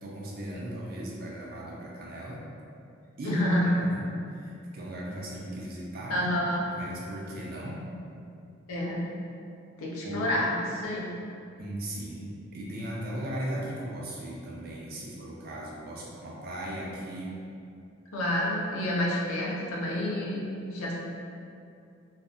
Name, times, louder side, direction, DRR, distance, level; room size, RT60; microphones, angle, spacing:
voice 1, 0.0-2.4 3.2-6.2 6.7-7.8 10.0-10.2 11.6-17.3, right 1 dB, 45° right, -3 dB, 0.4 m, -37 dB
voice 2, 3.2-3.7 6.1-6.7 8.7-9.2 9.8-11.1 18.1-20.9, left 1 dB, 85° left, -4 dB, 0.5 m, -29 dB
2.6 x 2.1 x 2.4 m, 2.5 s
head